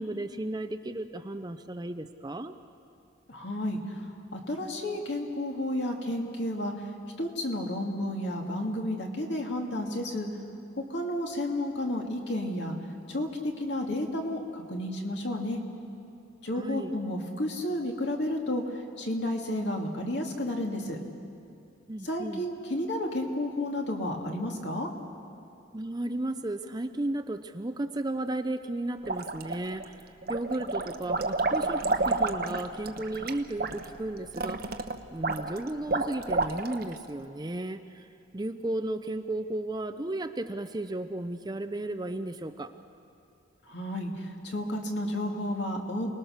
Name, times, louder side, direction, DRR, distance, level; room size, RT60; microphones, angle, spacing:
voice 1, 0.0-2.5 16.5-16.9 21.9-22.5 25.7-34.8 35.1-38.1 38.3-42.7, right 1 dB, 20° right, 9 dB, 0.6 m, -34 dB
voice 2, 3.3-4.1 4.3-6.9 7.2-10.3 10.9-12.8 13.1-15.6 16.4-21.0 22.0-24.9 43.7-46.1, left 1 dB, 60° left, 1 dB, 2.5 m, -32 dB
sound 1, 29.0-29.8 30.2-36.9, right 3 dB, 50° right, 1.0 m, -30 dB
29.5 x 20.0 x 6.5 m, 2.7 s
head